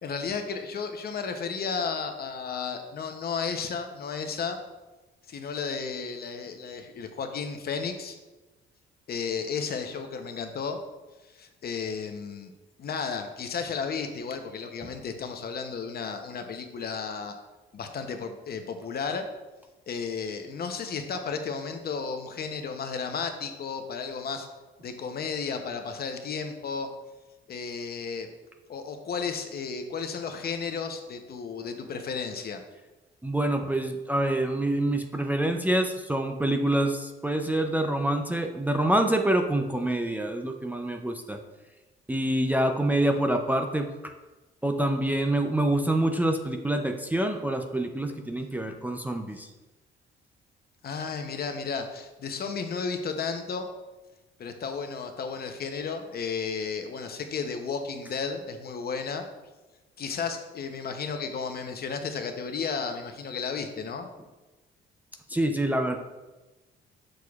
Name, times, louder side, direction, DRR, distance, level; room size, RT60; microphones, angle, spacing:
voice 1, 0.0-4.6 5.3-8.2 9.1-10.8 11.3-12.5 12.8-17.3 17.7-19.3 19.9-24.5 24.8-26.9 27.5-28.3 28.7-32.6 50.8-53.7 54.4-59.2 60.0-64.1, left 5 dB, 50° left, 6 dB, 0.7 m, -33 dB
voice 2, 33.2-41.4 42.1-44.1 44.6-49.5 65.3-66.0, right 1 dB, 10° right, 4 dB, 0.4 m, -26 dB
6.6 x 6.2 x 2.4 m, 1.1 s
cardioid pair, 90°, 20 cm